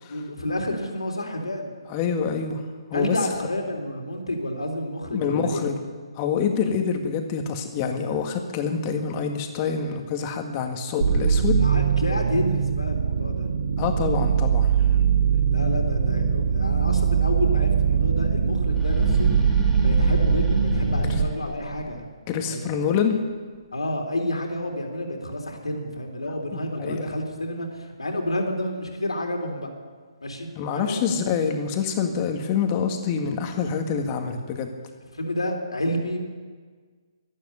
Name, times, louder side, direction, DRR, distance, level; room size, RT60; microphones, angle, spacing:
voice 1, 0.1-1.7 2.9-5.6 11.6-13.5 15.5-19.3 19.8-22.0 22.5-22.8 23.7-29.7 30.2-31.0 35.1-36.2, left 1 dB, 85° left, 2 dB, 3.6 m, -29 dB
voice 2, 1.9-2.6 2.9-3.2 5.1-5.8 6.2-11.6 13.8-14.7 21.1-21.2 22.3-23.2 26.5-27.0 30.6-34.7, left 6 dB, 30° left, 5 dB, 1.9 m, -26 dB
sound 1, 11.0-21.2, right 7 dB, 65° right, 1.4 m, -22 dB
sound 2, 18.7-22.0, right 1 dB, ahead, 2.3 m, -26 dB
12.0 x 12.0 x 9.9 m, 1.5 s
figure-of-eight pair, 145°, 3 cm